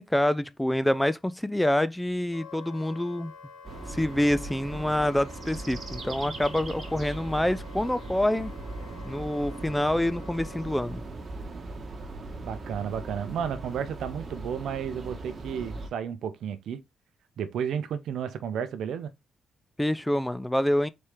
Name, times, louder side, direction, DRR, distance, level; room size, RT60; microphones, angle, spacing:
voice 1, 0.0-3.3 3.9-8.5 9.0-11.0 19.8-20.9, left 1 dB, 10° left, 0.4 m, -26 dB
Wind instrument woodwind instrument, 2.3-10.8, left 5 dB, 80° left, 1.9 m, -49 dB
sound 1, 3.6-15.9, right 2 dB, 45° right, 1.4 m, -39 dB
voice 2, 12.4-16.8 17.4-19.1, right 8 dB, 75° right, 0.6 m, -32 dB
4.2 x 3.3 x 3.4 m
supercardioid pair, 60°, 0 cm